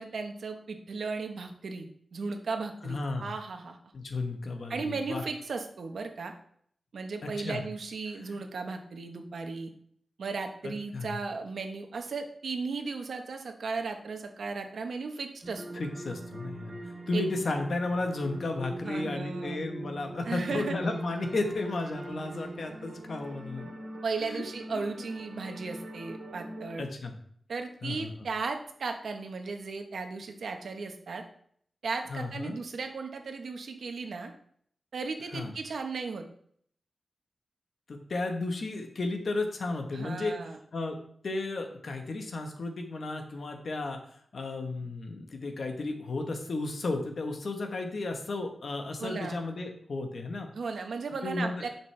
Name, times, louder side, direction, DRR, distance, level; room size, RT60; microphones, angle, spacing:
voice 1, 0.0-3.8 4.7-6.3 6.9-9.7 10.2-15.6 17.1-17.2 18.8-19.6 20.3-20.8 24.0-26.9 27.5-31.2 31.8-34.3 34.9-36.3 39.9-40.6 49.0-49.4 50.5-51.7, right 4 dB, 80° right, 5 dB, 1.1 m, -36 dB
voice 2, 2.8-3.3 3.9-5.2 7.2-7.6 10.6-11.1 15.7-16.8 17.1-23.7 24.2-24.4 24.7-24.8 26.8-27.1 27.8-28.1 32.1-32.6 35.3-35.5 37.9-40.4 40.7-41.0 41.2-44.0 44.3-50.5 51.2-51.5, left 2 dB, 60° left, 4 dB, 1.3 m, -33 dB
sound 1, 15.4-26.8, right 1 dB, 60° right, 2.8 m, -42 dB
11.0 x 6.0 x 3.4 m, 0.63 s
wide cardioid pair, 145°, 0 cm